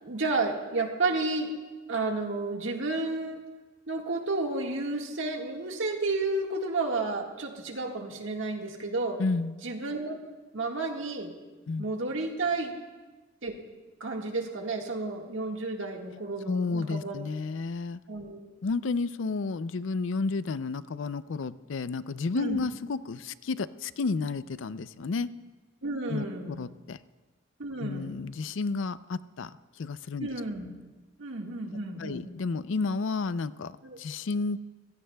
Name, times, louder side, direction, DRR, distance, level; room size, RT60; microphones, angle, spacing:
voice 1, 0.0-1.5 1.9-3.4 3.9-9.2 9.6-10.2 10.5-11.3 11.8-12.7 13.4-13.5 14.0-17.2 18.1-18.4 22.3-22.6 25.8-26.6 27.6-28.2 30.2-30.7 31.2-32.3 33.8-34.0, right 3 dB, 80° right, 2 dB, 1.7 m, -31 dB
voice 2, 9.2-9.6 11.7-11.8 16.5-18.0 18.6-25.3 26.1-27.0 27.8-29.5 29.8-30.3 32.0-34.6, left 4 dB, 70° left, 16 dB, 0.4 m, -31 dB
24.5 x 16.5 x 2.3 m, 1.2 s
head